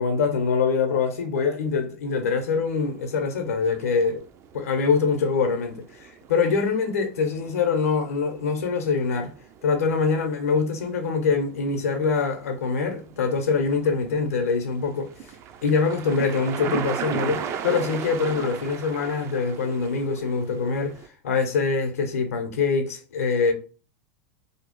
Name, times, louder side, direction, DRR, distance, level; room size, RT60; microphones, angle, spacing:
voice 1, 0.0-4.2 4.5-9.3 9.6-15.1 15.6-20.9 21.2-23.5, left 5 dB, 85° left, 0.6 m, -24 dB
sound 1, 2.4-21.1, right 7 dB, 35° right, 0.3 m, -38 dB
2.7 x 2.0 x 2.9 m
hypercardioid pair, 110°, 8 cm